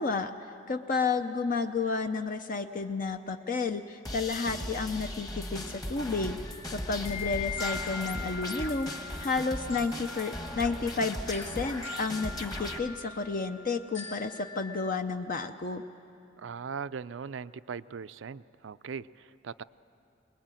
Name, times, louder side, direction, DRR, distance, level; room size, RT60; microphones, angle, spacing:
voice 1, 0.0-6.4 6.7-15.8, left 4 dB, 45° left, 7 dB, 0.6 m, -31 dB
sound 1, 4.0-12.8, left 1 dB, 20° left, 1.3 m, -38 dB
sound 2, 6.5-14.9, left 5 dB, 80° left, 2.2 m, -42 dB
voice 2, 16.4-19.6, right 6 dB, 80° right, 15 dB, 0.5 m, -39 dB
23.0 x 20.5 x 9.1 m, 2.7 s
head